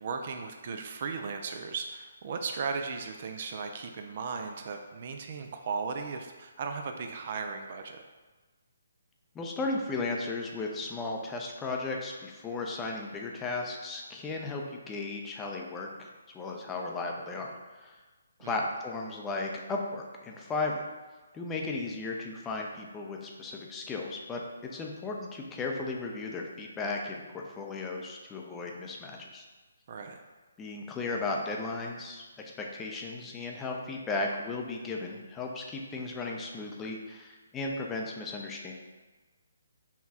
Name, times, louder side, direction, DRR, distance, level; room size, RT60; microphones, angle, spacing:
voice 1, 0.0-8.0 18.4-18.6 29.9-30.2, right 5 dB, 45° right, 5 dB, 0.3 m, -36 dB
voice 2, 9.3-16.1 16.3-17.5 17.8-18.0 18.4-20.9 21.3-24.4 24.7-29.4 30.6-32.2 32.6-38.7, left 3 dB, 15° left, 0 dB, 0.5 m, -35 dB
5.6 x 2.3 x 2.8 m, 1.3 s
figure-of-eight pair, 140°, 0 cm